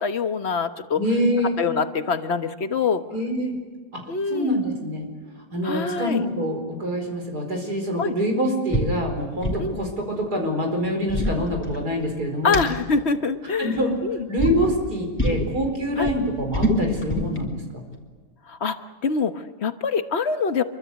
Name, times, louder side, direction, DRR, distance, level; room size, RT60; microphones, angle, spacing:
voice 1, 0.0-1.0 1.6-3.0 4.1-4.7 5.6-6.2 8.0-8.1 9.6-9.8 12.4-13.8 14.0-14.3 16.0-16.1 18.5-18.8 19.0-20.6, left 5 dB, 45° left, 9 dB, 1.4 m, -24 dB
voice 2, 1.0-1.5 3.1-3.6 3.9-4.0 4.3-5.1 5.5-12.6 13.6-13.9 14.3-17.8, equal, 70° right, 3 dB, 5.1 m, -25 dB
sound 1, 8.7-8.9 9.2-9.7 10.8-12.1 12.5-12.6 13.7-14.0 14.4-14.6 15.2-15.5 15.8-17.4, equal, 5° left, 3.4 m, -25 dB
27.0 x 24.0 x 8.2 m, 1.4 s
omnidirectional pair, 1.7 m